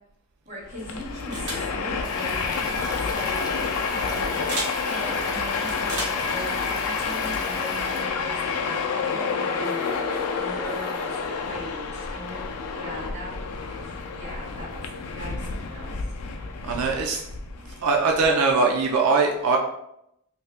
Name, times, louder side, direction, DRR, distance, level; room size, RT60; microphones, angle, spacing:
voice 1, 0.4-3.3 3.8-8.5 9.1-13.3 13.8-14.8 15.2-16.1, equal, 35° right, -7 dB, 1.3 m, -39 dB
Train, 0.7-18.3, left 5 dB, 90° left, 0.4 m, -29 dB
sound 1, 1.3-1.7 3.0-3.2 4.5-4.7 5.8-6.3, right 1 dB, 55° right, 1.3 m, -32 dB
Stream, 2.0-8.0, left 2 dB, 15° left, 0.4 m, -38 dB
voice 2, 16.7-17.2 17.8-19.6, right 4 dB, 85° right, 1 dB, 0.4 m, -21 dB
2.7 x 2.7 x 3.3 m, 0.78 s
head